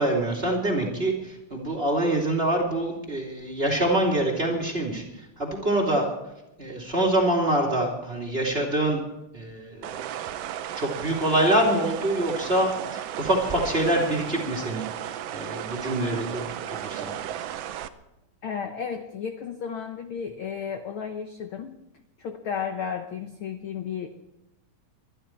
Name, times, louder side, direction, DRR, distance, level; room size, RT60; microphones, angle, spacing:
voice 1, 0.0-6.1 6.6-9.0 9.3-10.0 10.7-17.2, right 1 dB, 20° right, -1 dB, 2.5 m, -25 dB
sound 1, 9.8-17.9, right 11 dB, 85° right, 1.4 m, -35 dB
voice 2, 18.4-21.8 22.2-24.1, left 7 dB, 70° left, 6 dB, 1.2 m, -33 dB
23.5 x 11.5 x 4.5 m, 0.93 s
omnidirectional pair, 3.7 m